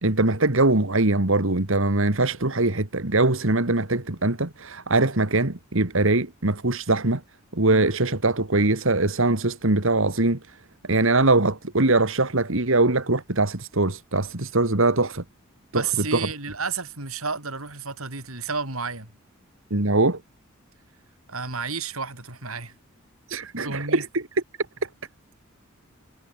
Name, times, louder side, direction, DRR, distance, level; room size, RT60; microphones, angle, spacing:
voice 1, 0.0-7.2 7.5-10.4 10.9-15.2 15.7-15.8 16.1-16.3 19.7-20.2 23.3-24.2, right 2 dB, 65° right, 2.2 m, -22 dB
voice 2, 15.7-19.1 21.3-22.7 23.6-24.0, right 5 dB, 85° right, 7.4 m, -31 dB
head